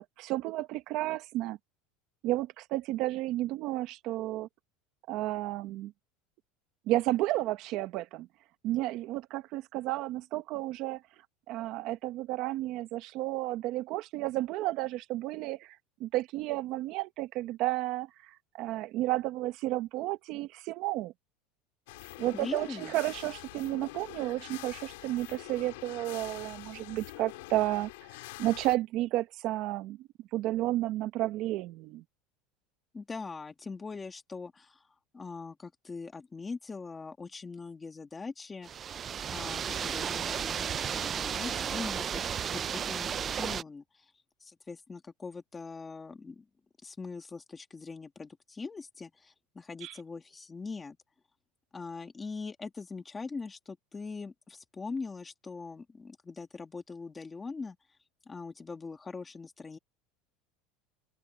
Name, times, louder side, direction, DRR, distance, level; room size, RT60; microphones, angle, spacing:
voice 1, 0.0-1.6 2.2-4.5 5.1-5.9 6.9-8.3 8.6-11.0 11.5-21.1 22.2-27.9 28.4-32.0 49.8-49.9, right 16 dB, 45° right, 1.1 m, -32 dB
sound 1, 21.9-28.8, left 21 dB, 85° left, 3.7 m, -45 dB
voice 2, 22.3-22.9 32.9-34.8 35.1-38.7 39.3-42.2 42.5-44.1 44.4-46.5 46.8-51.0 51.7-57.8 58.3-59.8, left 4 dB, 15° left, 2.3 m, -42 dB
sound 2, 38.6-43.6, right 8 dB, 25° right, 0.4 m, -33 dB
open air
cardioid pair, 160°, 0 cm